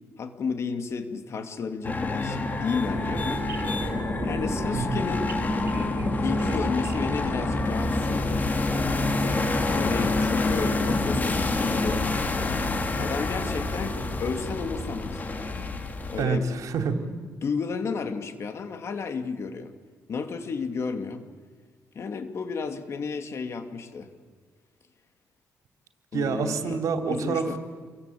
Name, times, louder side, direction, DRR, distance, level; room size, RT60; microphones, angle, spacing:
voice 1, 0.2-3.4 4.2-5.3 6.2-8.4 9.7-12.3 13.0-15.2 16.1-16.5 17.4-19.7 20.1-21.2 21.9-24.1 26.1-27.6, left 5 dB, 50° left, 7 dB, 2.6 m, -32 dB
sound 1, 1.8-16.2, left 2 dB, 30° left, 3.3 m, -27 dB
sound 2, 2.8-8.2, right 4 dB, 45° right, 4.3 m, -37 dB
voice 2, 16.2-17.1 26.1-27.6, right 5 dB, 65° right, 5 dB, 3.2 m, -27 dB
28.5 x 23.5 x 8.6 m, 1.6 s
cardioid pair, 125°, 6 cm